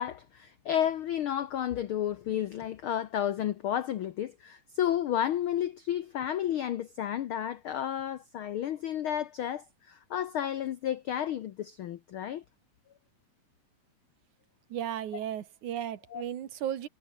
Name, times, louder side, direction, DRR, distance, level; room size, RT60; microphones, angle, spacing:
voice 1, 0.0-12.4 16.1-16.2, left 10 dB, 85° left, 1.1 m, -32 dB
voice 2, 14.7-16.9, right 10 dB, 75° right, 3.0 m, -35 dB
omnidirectional pair, 3.6 m